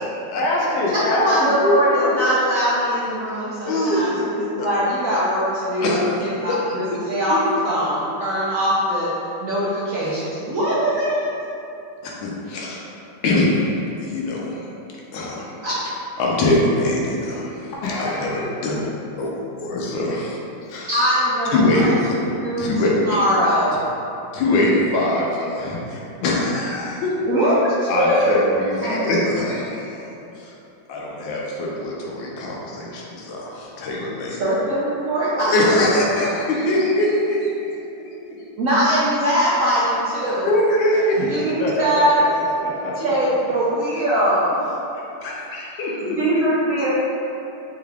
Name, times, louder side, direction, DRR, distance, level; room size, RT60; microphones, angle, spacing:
voice 1, 0.3-2.2 3.7-4.1 17.8-18.5 41.2-42.9, left 1 dB, 70° left, -5 dB, 1.1 m, -24 dB
voice 2, 0.9-9.1 9.4-11.3 15.6-15.7 20.9-23.8 27.3-28.4 28.8-29.1 34.4-35.9 36.2-36.4 38.6-40.5 41.3-42.2 43.0-44.6 46.0-46.9, equal, 70° right, -9 dB, 0.8 m, -21 dB
voice 3, 3.7-4.0 4.6-4.7 5.8-6.2 6.5-6.6 7.3-7.4 10.0-10.1 12.0-12.9 13.2-13.7 14.0-14.7 15.1-15.6 16.2-17.7 18.0-18.8 19.2-19.3 19.6-20.4 20.7-20.9 21.5-22.2 22.6-22.9 24.3-27.1 27.9-30.1 30.4-30.5 30.9-34.4 35.4-38.3 40.4-41.4 45.2-46.4, left 1 dB, 85° left, -3 dB, 1.4 m, -23 dB
4.5 x 2.3 x 3.3 m, 2.8 s
omnidirectional pair, 2.0 m